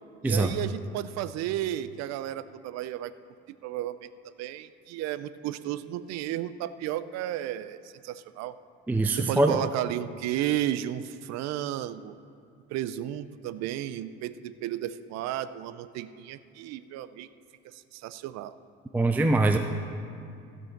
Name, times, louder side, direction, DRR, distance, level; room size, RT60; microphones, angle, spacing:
voice 1, 0.2-3.1 3.5-8.6 9.1-12.1 12.7-17.3 17.6-18.6, right 12 dB, 65° right, 14 dB, 0.5 m, -33 dB
voice 2, 8.9-9.6 18.9-19.6, right 2 dB, 5° right, 6 dB, 0.4 m, -23 dB
15.5 x 5.4 x 5.8 m, 2.5 s
supercardioid pair, 90°, 29 cm